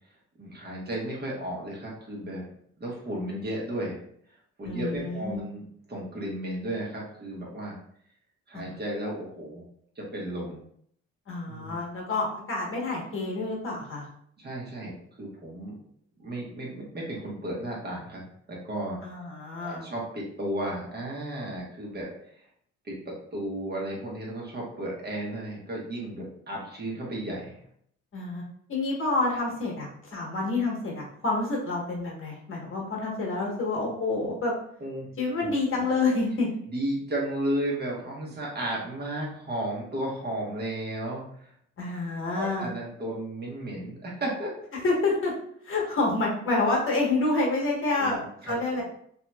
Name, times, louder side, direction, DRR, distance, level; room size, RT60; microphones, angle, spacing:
voice 1, 0.4-2.5 2.8-4.0 4.6-7.8 8.5-9.6 10.0-10.6 11.5-11.8 14.4-14.9 15.2-15.8 16.2-18.2 18.5-19.0 19.6-22.4 22.8-27.6 34.8-35.1 35.4-35.8 36.7-41.5 42.4-44.5 48.0-48.8, right 1 dB, 35° right, -3 dB, 1.1 m, -34 dB
voice 2, 4.6-5.4 8.5-8.7 11.3-14.1 19.0-19.8 28.1-28.4 28.7-34.5 35.2-36.5 41.8-42.7 44.7-45.3 45.6-48.8, left 3 dB, 45° left, -2 dB, 1.1 m, -28 dB
2.9 x 2.7 x 2.2 m, 0.66 s
cardioid pair, 90°, 30 cm